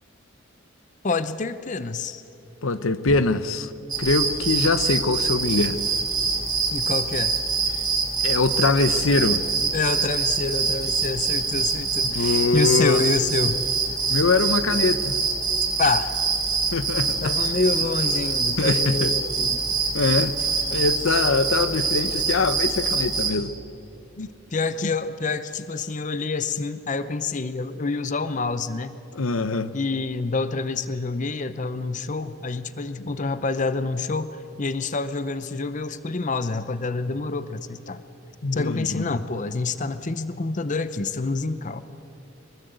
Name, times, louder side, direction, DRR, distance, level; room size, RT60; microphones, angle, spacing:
voice 1, 1.0-2.2 3.1-3.2 6.7-7.4 9.7-13.6 15.8-16.1 17.2-19.7 24.5-29.0 29.7-38.0 38.5-41.8, left 3 dB, 40° left, 13 dB, 0.7 m, -27 dB
voice 2, 2.6-3.7 4.0-5.8 8.2-9.4 12.0-13.0 14.1-15.2 16.7-17.3 18.6-19.1 19.9-20.4 20.7-23.5 24.2-24.3 29.1-29.7 38.4-39.0, left 3 dB, 80° left, 13 dB, 1.0 m, -23 dB
sound 1, 3.9-23.3, right 4 dB, 20° right, 4.8 m, -25 dB
23.5 x 21.0 x 8.1 m, 3.0 s
head